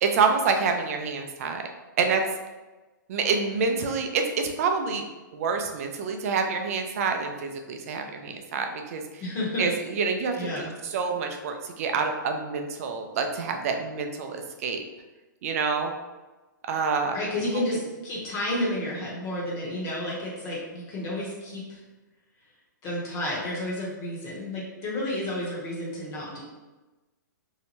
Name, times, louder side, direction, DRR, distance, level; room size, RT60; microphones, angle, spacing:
voice 1, 0.0-1.6 2.0-2.2 3.1-5.0 5.3-9.2 9.6-14.8 15.4-15.9 16.7-17.2, right 5 dB, 45° right, 4 dB, 0.4 m, -27 dB
voice 2, 9.2-9.7 10.3-10.7 17.1-21.8 22.8-26.4, left 1 dB, 30° left, -5 dB, 0.9 m, -31 dB
2.7 x 2.1 x 3.0 m, 1.2 s
hypercardioid pair, 145°, 11 cm